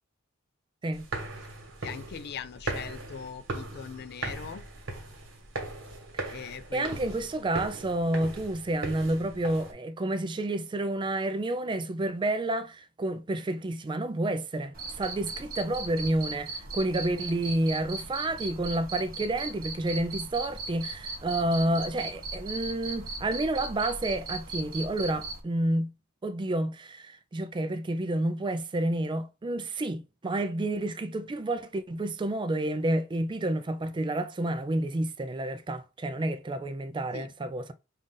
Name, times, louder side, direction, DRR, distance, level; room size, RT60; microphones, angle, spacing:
sound 1, 0.9-9.7, right 2 dB, 65° right, 1.5 m, -39 dB
voice 1, 1.8-4.7 6.3-7.2 37.1-37.3, left 7 dB, 50° left, 0.4 m, -41 dB
voice 2, 6.7-25.9 26.2-37.7, right 1 dB, 25° right, 0.4 m, -30 dB
Cricket, 14.7-25.4, right 3 dB, 45° right, 1.1 m, -38 dB
5.5 x 2.5 x 3.8 m
head